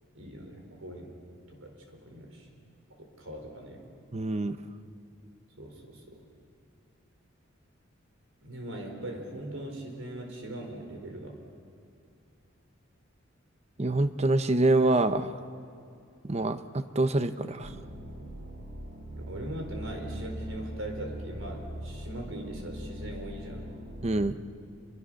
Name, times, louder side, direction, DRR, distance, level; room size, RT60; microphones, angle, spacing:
voice 1, 0.1-1.2 1.5-2.5 2.9-3.8 5.6-6.2 8.4-11.4 19.3-23.7, right 1 dB, 80° right, 2 dB, 4.7 m, -41 dB
voice 2, 4.1-4.6 13.8-15.4 16.2-17.7 24.0-24.3, right 2 dB, 35° right, 10 dB, 0.8 m, -26 dB
sound 1, 17.6-24.2, equal, 65° right, 2.3 m, -41 dB
29.0 x 23.5 x 6.5 m, 2.5 s
head